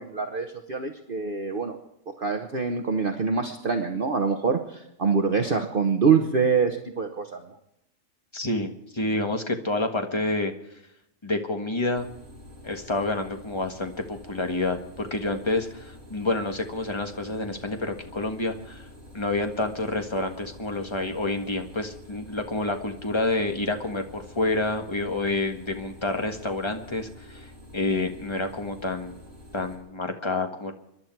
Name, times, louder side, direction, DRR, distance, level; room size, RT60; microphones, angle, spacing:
voice 1, 0.0-1.8 2.1-7.4, right 5 dB, 40° right, 4 dB, 1.3 m, -25 dB
voice 2, 8.3-10.5 11.2-12.1 12.6-18.8 19.1-29.2 29.5-30.7, left 2 dB, 20° left, 4 dB, 1.6 m, -28 dB
sound 1, 11.9-29.8, left 1 dB, 65° right, 5.5 m, -48 dB
26.5 x 11.5 x 4.6 m, 0.82 s
omnidirectional pair, 1.5 m